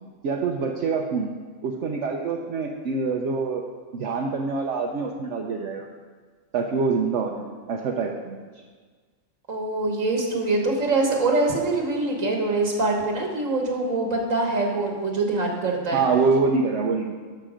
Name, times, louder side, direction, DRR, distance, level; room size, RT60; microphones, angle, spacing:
voice 1, 0.2-1.3 1.6-3.6 3.9-5.9 6.5-8.4 15.9-17.2, right 4 dB, 65° right, 1 dB, 1.0 m, -25 dB
voice 2, 9.5-16.0, right 2 dB, 85° right, 0 dB, 1.8 m, -24 dB
13.0 x 6.0 x 5.0 m, 1.5 s
omnidirectional pair, 1.3 m